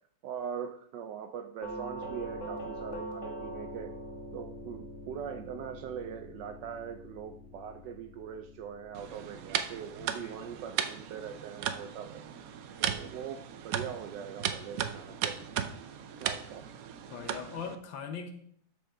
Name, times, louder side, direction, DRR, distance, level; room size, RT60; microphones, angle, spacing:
voice 1, 0.2-3.9 4.3-12.3 12.8-15.4 16.2-16.7, right 8 dB, 70° right, 8 dB, 1.1 m, -41 dB
Doorbell, 1.6-10.5, right 1 dB, 40° left, 1.5 m, -43 dB
sound 1, 8.9-17.8, right 9 dB, 90° right, 0.7 m, -36 dB
voice 2, 10.0-10.4 17.1-18.3, left 6 dB, 70° left, 5 dB, 1.7 m, -41 dB
12.5 x 5.2 x 3.8 m, 0.64 s
omnidirectional pair, 2.2 m